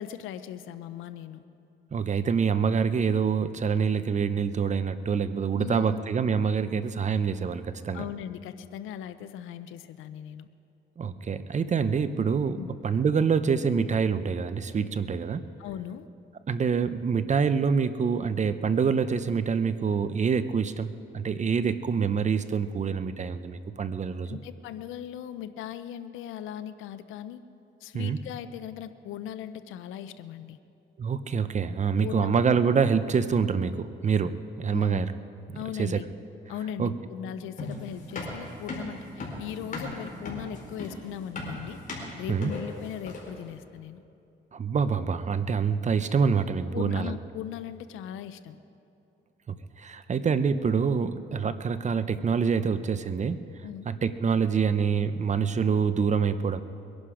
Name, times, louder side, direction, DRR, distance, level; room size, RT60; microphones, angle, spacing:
voice 1, 0.0-1.4 5.6-6.0 7.9-10.5 12.6-12.7 15.6-16.1 24.3-27.4 27.8-30.6 32.0-32.4 34.7-35.0 35.5-36.1 36.5-41.8 42.2-44.0 46.7-48.6 53.6-53.9, left 10 dB, 90° left, 12 dB, 0.6 m, -38 dB
voice 2, 1.9-8.0 11.0-12.6 12.8-15.4 16.5-24.4 27.9-28.2 31.0-35.1 35.8-36.0 36.8-36.9 37.4-37.5 42.3-42.5 44.5-47.2 49.5-53.5 53.9-56.6, right 6 dB, 35° right, 12 dB, 0.7 m, -26 dB
sound 1, 37.6-43.4, left 2 dB, 40° left, 4.4 m, -37 dB
22.0 x 11.5 x 5.0 m, 2.6 s
cardioid pair, 90°, 20 cm